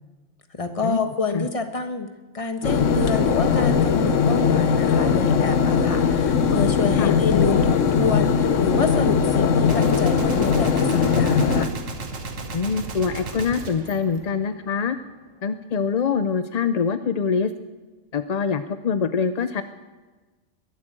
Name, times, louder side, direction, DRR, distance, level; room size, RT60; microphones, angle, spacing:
voice 1, 0.5-2.1 2.3-11.7, left 4 dB, 30° left, 7 dB, 1.2 m, -27 dB
sound 1, 2.6-11.7, left 6 dB, 80° left, 1.2 m, -20 dB
Gunshot gunfire, 9.7-14.9, right 4 dB, 90° right, 1.7 m, -35 dB
voice 2, 12.5-15.0 15.4-17.5 18.1-19.6, left 6 dB, 50° left, 10 dB, 0.4 m, -24 dB
21.0 x 8.3 x 7.6 m, 1.2 s
omnidirectional pair, 1.3 m